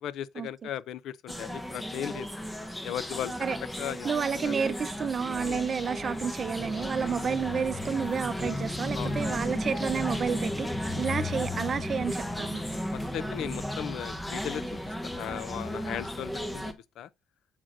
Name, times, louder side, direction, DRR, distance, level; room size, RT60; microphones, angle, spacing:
voice 1, 0.0-2.3 2.8-3.3 3.8-4.1 4.4-4.5 5.4-5.6 8.9-9.2 12.9-17.1, left 10 dB, 70° left, 0.4 m, -37 dB
sound 1, 1.3-16.7, left 1 dB, 5° left, 0.7 m, -34 dB
voice 2, 4.0-10.7 11.0-12.6, right 6 dB, 30° right, 0.6 m, -30 dB
7.4 x 6.3 x 2.5 m
cardioid pair, 165°, 0 cm